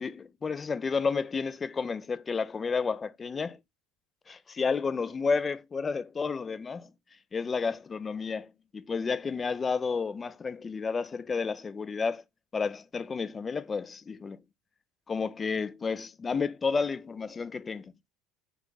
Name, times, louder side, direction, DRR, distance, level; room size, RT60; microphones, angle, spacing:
voice 1, 0.0-3.6 4.3-6.9 7.3-12.2 12.5-14.4 15.1-17.9, left 5 dB, 25° left, 0.4 m, -31 dB
3.1 x 2.3 x 3.8 m
hypercardioid pair, 80°, 0 cm